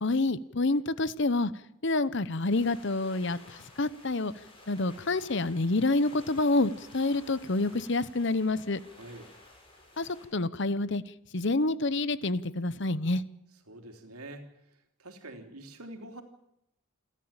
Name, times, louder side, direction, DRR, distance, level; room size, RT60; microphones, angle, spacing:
voice 1, 0.0-1.5 1.8-4.3 4.7-8.8 10.0-11.0 11.3-13.2, left 2 dB, 55° left, 17 dB, 0.9 m, -28 dB
sound 1, 2.5-10.3, left 2 dB, 25° left, 6.2 m, -53 dB
voice 2, 9.0-9.3 13.7-14.5 15.0-16.2, right 1 dB, 85° right, 5 dB, 3.4 m, -45 dB
28.5 x 13.0 x 8.9 m, 0.81 s
head